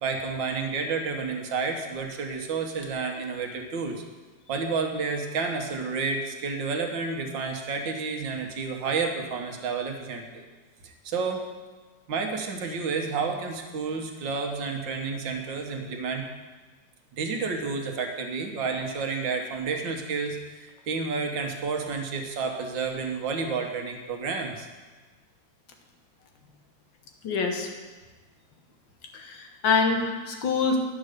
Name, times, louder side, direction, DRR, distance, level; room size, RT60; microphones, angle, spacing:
voice 1, 0.0-4.0 4.5-10.4 10.8-11.5 12.1-16.2 17.2-24.7, right 4 dB, 75° right, 3 dB, 1.8 m, -30 dB
voice 2, 27.2-27.7 29.1-30.8, left 4 dB, 80° left, 3 dB, 1.9 m, -25 dB
10.0 x 6.5 x 6.5 m, 1.3 s
omnidirectional pair, 2.1 m